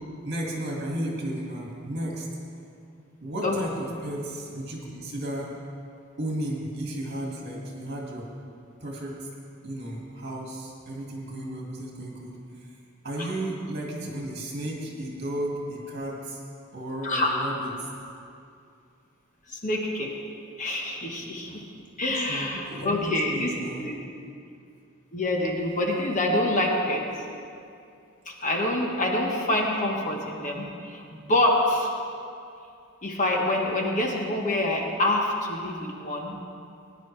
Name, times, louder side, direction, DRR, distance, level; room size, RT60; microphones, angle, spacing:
voice 1, 0.2-2.3 3.2-5.5 6.2-8.3 8.8-9.3 9.6-12.8 13.0-16.4 16.7-17.7 21.5-21.6 22.1-23.9, right 1 dB, 50° right, -2 dB, 2.3 m, -34 dB
voice 2, 17.0-17.4 19.5-20.1 20.6-21.6 22.0-23.9 25.1-27.0 28.3-31.9 33.0-36.4, left 1 dB, 35° left, 0 dB, 1.3 m, -26 dB
18.0 x 10.0 x 3.4 m, 2.5 s
head